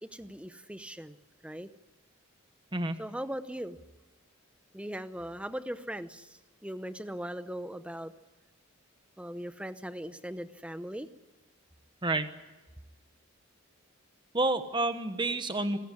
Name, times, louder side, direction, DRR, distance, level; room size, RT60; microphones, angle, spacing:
voice 1, 0.0-1.2 1.4-1.7 3.0-3.8 4.7-8.1 9.2-11.1, equal, 5° right, 12 dB, 0.8 m, -39 dB
voice 2, 12.0-12.3 14.3-15.8, right 2 dB, 20° right, 10 dB, 1.1 m, -29 dB
26.5 x 15.0 x 9.8 m, 1.2 s
head